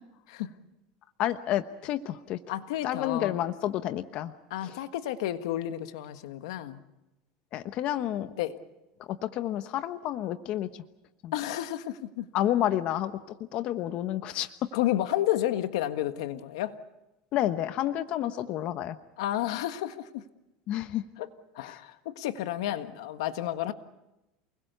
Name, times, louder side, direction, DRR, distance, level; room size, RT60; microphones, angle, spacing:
voice 1, 1.2-2.4 2.8-4.3 4.6-4.8 7.5-8.3 9.1-10.8 11.2-11.3 12.3-13.1 13.5-14.5 17.3-19.0 20.7-21.0, left 12 dB, 45° left, 1.1 m, -30 dB
voice 2, 2.5-3.4 4.5-6.8 8.4-8.6 11.3-12.3 14.7-16.8 19.2-20.2 21.2-21.3 21.5-23.7, left 13 dB, 85° left, 1.5 m, -31 dB
29.0 x 21.0 x 6.8 m
supercardioid pair, 140°, 3 cm